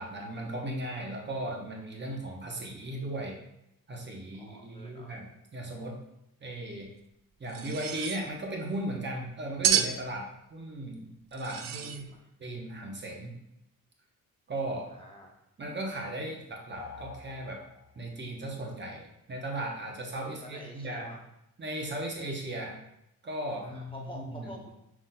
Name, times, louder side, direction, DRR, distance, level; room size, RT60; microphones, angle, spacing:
voice 1, 0.0-3.3 3.9-5.2 5.5-6.0 6.4-6.9 7.4-12.1 12.4-13.3 14.5-14.9 15.6-17.6 18.0-21.1 21.6-22.8 23.2-24.5, right 1 dB, 30° right, 0 dB, 0.8 m, -37 dB
voice 2, 4.4-5.1 11.8-12.3 14.9-15.3 20.4-21.2 23.6-24.7, left 1 dB, 15° left, -2 dB, 0.6 m, -48 dB
sound 1, 7.5-8.2 9.6-10.0 11.3-12.0, right 9 dB, 75° right, 0.5 m, -29 dB
sound 2, 16.7-18.2, left 5 dB, 75° left, 0.5 m, -47 dB
5.9 x 3.8 x 2.2 m, 0.83 s
wide cardioid pair, 125°, 35 cm